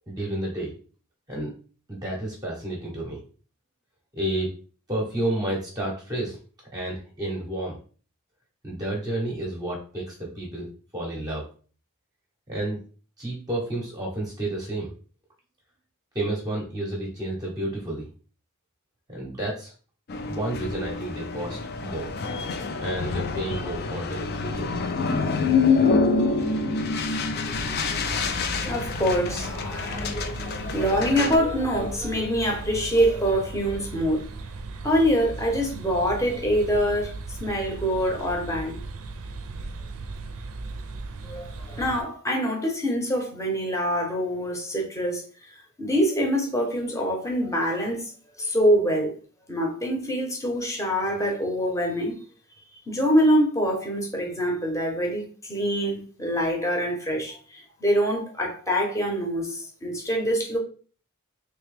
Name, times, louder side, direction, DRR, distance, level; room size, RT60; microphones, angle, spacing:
voice 1, 0.1-0.7 1.3-1.5 1.9-3.2 4.1-4.5 4.9-6.4 6.7-7.8 8.6-11.4 12.5-12.8 13.2-14.9 16.1-18.1 19.1-19.7 20.3-22.2 22.8-24.8, right 1 dB, 15° right, 0.8 m, -31 dB
sound 1, 20.1-31.4, left 4 dB, 45° left, 0.4 m, -27 dB
sound 2, 26.2-29.0 30.4-30.5, equal, 75° left, 0.9 m, -37 dB
voice 2, 27.3-34.2 34.8-37.1 37.4-38.8 41.2-45.2 45.8-48.1 48.4-49.1 49.5-52.1 52.9-60.6, equal, 15° left, 0.9 m, -25 dB
sound 3, 27.5-42.0, right 3 dB, 70° right, 0.4 m, -37 dB
3.2 x 2.9 x 3.3 m
head